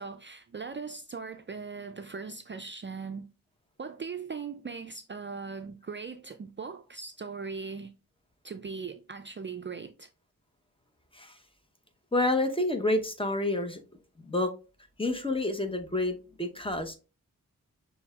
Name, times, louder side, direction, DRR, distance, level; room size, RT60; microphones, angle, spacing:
voice 1, 0.0-3.3 3.8-7.9 8.4-10.1, right 5 dB, 35° right, 0.4 m, -39 dB
voice 2, 12.1-13.8 14.3-14.5 15.0-17.0, left 2 dB, 15° left, 0.9 m, -28 dB
6.2 x 3.4 x 2.4 m
cardioid pair, 60°, 34 cm